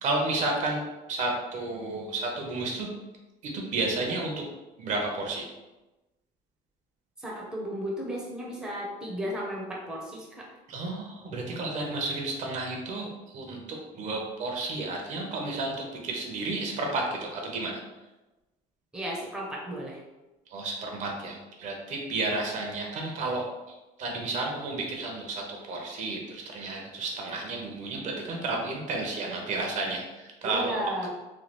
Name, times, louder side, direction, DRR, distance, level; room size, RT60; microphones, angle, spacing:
voice 1, 0.0-2.9 3.4-4.4 4.8-5.5 10.7-17.8 20.5-23.5 24.0-30.7 31.0-31.1, right 2 dB, 50° right, 1 dB, 0.6 m, -32 dB
voice 2, 7.2-10.5 18.9-20.0 30.4-31.1, equal, 5° right, -4 dB, 0.6 m, -34 dB
3.1 x 2.2 x 2.9 m, 1.1 s
cardioid pair, 140°, 16 cm